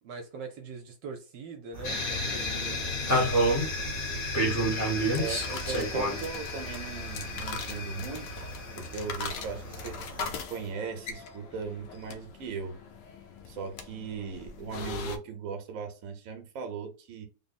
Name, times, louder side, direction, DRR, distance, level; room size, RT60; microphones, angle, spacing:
voice 1, 0.0-2.9, right 4 dB, 75° right, 1.2 m, -42 dB
sound 1, 1.7-10.4, right 1 dB, 10° left, 0.7 m, -32 dB
sound 2, 1.8-9.4, left 3 dB, 90° left, 1.9 m, -36 dB
sound 3, 4.9-15.2, left 5 dB, 75° left, 1.2 m, -41 dB
voice 2, 5.2-8.4 8.8-10.0 10.5-12.8 13.5-17.3, right 6 dB, 55° right, 1.0 m, -38 dB
3.6 x 2.0 x 4.0 m
omnidirectional pair, 2.1 m